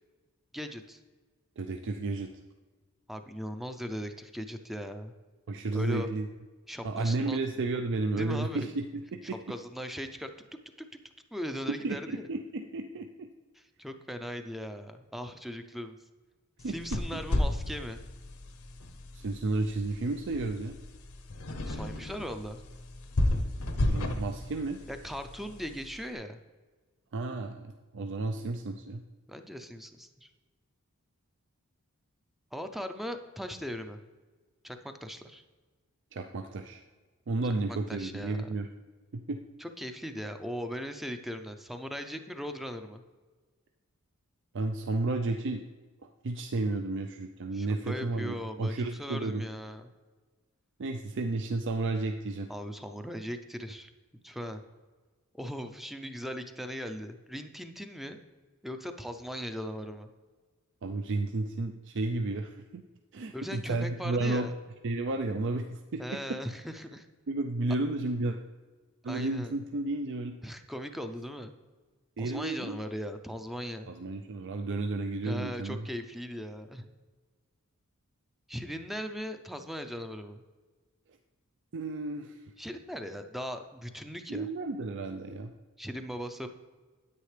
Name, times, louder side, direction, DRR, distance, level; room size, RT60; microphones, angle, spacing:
voice 1, 0.5-1.0 3.1-5.1 5.7-6.1 6.7-7.4 8.2-8.7 9.5-10.3 11.3-12.3 13.6-16.0 16.7-18.1 21.7-22.6 24.9-26.4 29.3-30.3 32.5-34.0 34.6-35.4 37.7-38.5 39.6-43.0 47.5-49.9 52.5-53.9 54.2-54.6 55.3-58.2 58.6-60.1 63.3-64.5 66.0-67.1 69.1-69.5 70.4-71.6 72.2-73.9 75.2-76.9 78.5-80.4 82.6-84.5 85.8-86.5, equal, ahead, 7 dB, 0.5 m, -39 dB
voice 2, 1.6-2.4 5.5-6.3 6.8-9.0 9.3-9.4 11.7-13.3 16.6-17.2 19.1-20.8 23.8-24.8 27.1-29.0 36.1-36.8 37.3-38.7 39.1-39.4 44.5-45.7 46.0-49.4 50.8-52.5 60.8-62.8 63.1-64.5 64.8-66.0 67.3-68.4 69.0-70.4 72.2-72.8 73.9-75.8 81.7-82.4 84.3-85.5, right 2 dB, 55° right, 5 dB, 0.5 m, -32 dB
sound 1, 16.6-26.0, left 1 dB, 75° left, 0.8 m, -33 dB
9.7 x 8.6 x 3.2 m, 1.4 s
head